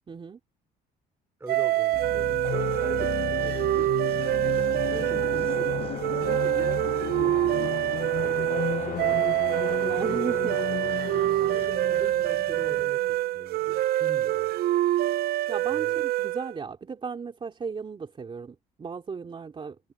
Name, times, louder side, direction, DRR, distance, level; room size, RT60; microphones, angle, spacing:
voice 1, 0.1-0.4 9.8-10.6 11.2-11.4 15.5-19.8, right 5 dB, 30° right, 3.3 m, -36 dB
voice 2, 1.4-4.1 4.5-9.5 9.8-10.4 11.4-14.6 15.7-16.0, right 2 dB, 15° right, 5.3 m, -42 dB
sound 1, 1.5-16.5, right 14 dB, 65° right, 0.5 m, -26 dB
sound 2, 1.9-13.5, left 11 dB, 55° left, 0.9 m, -35 dB
sound 3, 2.4-12.8, left 6 dB, 35° left, 4.5 m, -43 dB
cardioid pair, 110°, 17 cm